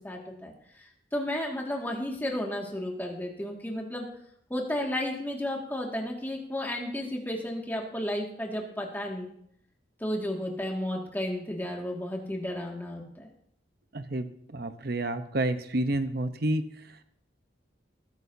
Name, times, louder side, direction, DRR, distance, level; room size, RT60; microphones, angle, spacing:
voice 1, 0.0-4.1 4.5-9.3 10.0-13.3, left 1 dB, 10° left, 0 dB, 2.1 m, -33 dB
voice 2, 13.9-17.0, right 1 dB, 60° right, 9 dB, 0.9 m, -30 dB
20.5 x 10.5 x 2.8 m, 0.70 s
head